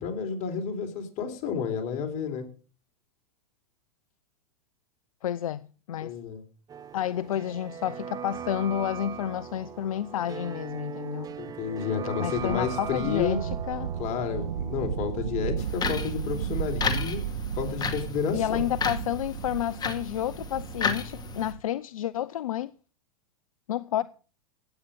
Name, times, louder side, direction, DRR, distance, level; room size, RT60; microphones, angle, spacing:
voice 1, 0.0-2.5 6.0-6.4 11.4-13.4 14.0-17.2 17.5-18.7, left 7 dB, 40° left, 3.8 m, -31 dB
voice 2, 5.2-6.1 6.9-11.3 12.2-13.9 18.3-22.7 23.7-24.0, left 11 dB, 70° left, 0.6 m, -30 dB
sound 1, 6.7-18.4 18.7-18.8, right 8 dB, 20° right, 0.8 m, -40 dB
sound 2, 11.4-11.5 11.6-11.7 12.1-21.6, right 9 dB, 75° right, 0.8 m, -34 dB
sound 3, 15.6-21.5, left 5 dB, 20° left, 2.2 m, -34 dB
16.0 x 9.0 x 5.2 m
hypercardioid pair, 105°, 18 cm